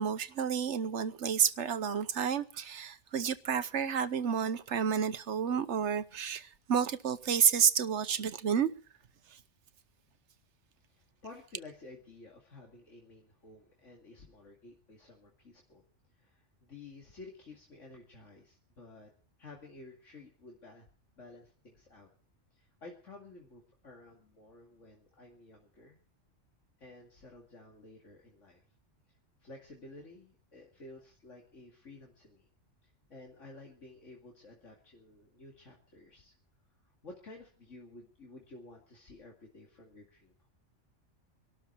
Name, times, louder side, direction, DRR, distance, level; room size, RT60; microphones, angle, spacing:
voice 1, 0.0-8.7, right 7 dB, 70° right, 1.2 m, -30 dB
voice 2, 10.9-15.8 16.1-19.1 19.4-20.9 21.2-22.1 22.5-26.0 26.8-28.6 29.1-32.5 32.8-36.3 36.8-40.5, left 2 dB, 80° left, 2.7 m, -53 dB
24.0 x 12.5 x 4.4 m
omnidirectional pair, 1.3 m